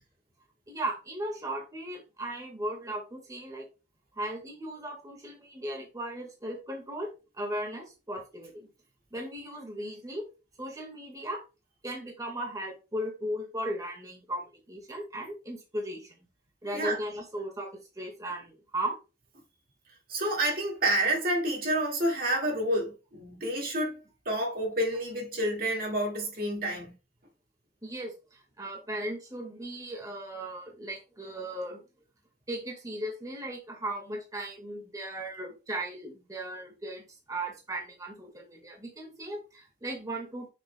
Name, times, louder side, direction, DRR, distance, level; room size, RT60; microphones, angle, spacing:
voice 1, 0.7-3.7 4.2-8.7 9.1-10.3 10.6-11.4 11.8-16.1 16.6-18.9 27.8-31.8 32.5-40.5, right 1 dB, 20° right, 1.7 m, -37 dB
voice 2, 16.6-17.0 20.1-24.0 24.3-26.9, right 1 dB, 55° right, 2.0 m, -29 dB
6.5 x 6.4 x 2.2 m
head